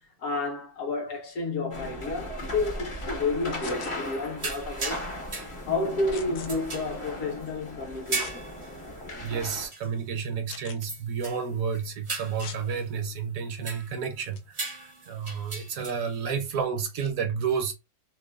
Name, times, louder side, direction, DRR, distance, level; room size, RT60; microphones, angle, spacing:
voice 1, 0.2-5.1 5.7-8.5, left 3 dB, 65° left, 1.1 m, -31 dB
sound 1, 1.7-9.7, left 1 dB, 35° left, 0.5 m, -37 dB
sound 2, 3.6-3.9 6.1-6.5 8.1-8.4 9.0-9.1 10.5-10.9 12.4-12.6 14.2-14.4, left 6 dB, 85° left, 1.1 m, -41 dB
sound 3, 3.7-4.1 4.4-6.0 6.5-7.5 8.0-9.4 9.7-9.9 10.2-10.3 10.8-11.4 11.7-14.1 14.5-16.2, right 3 dB, 40° right, 0.4 m, -37 dB
voice 2, 9.2-17.7, right 6 dB, 70° right, 1.0 m, -31 dB
3.0 x 2.1 x 2.3 m
omnidirectional pair, 1.6 m